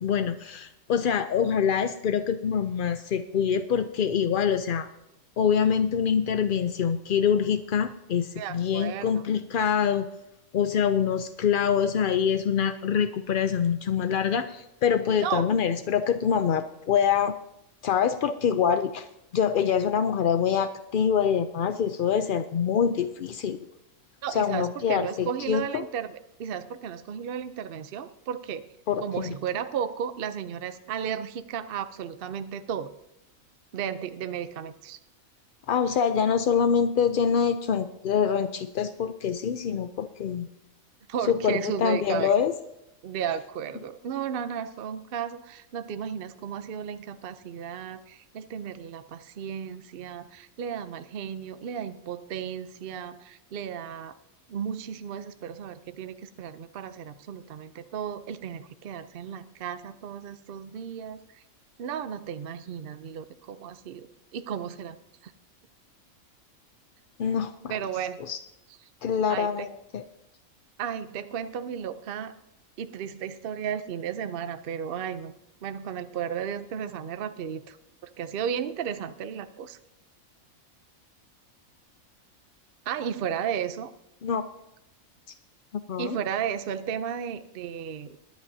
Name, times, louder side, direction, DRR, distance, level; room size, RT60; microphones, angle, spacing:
voice 1, 0.0-4.9 5.4-10.0 10.5-17.3 17.8-19.1 19.3-23.6 24.3-25.8 28.9-29.3 35.7-40.5 41.3-42.5 67.2-67.7 68.3-68.4 69.0-69.7 69.9-70.0 84.2-84.4 85.9-86.2, left 7 dB, 65° left, 9 dB, 0.5 m, -25 dB
voice 2, 8.4-9.3 15.2-15.5 24.2-28.6 29.0-32.9 33.7-35.0 41.1-42.3 43.0-54.1 54.5-61.4 61.8-64.1 64.3-65.0 65.2-65.3 67.7-68.2 69.3-69.7 70.8-72.3 72.8-75.3 75.6-77.8 78.0-79.8 82.9-83.9 86.0-88.2, right 8 dB, 55° right, 11 dB, 0.6 m, -34 dB
20.5 x 10.5 x 2.7 m, 0.84 s
omnidirectional pair, 1.5 m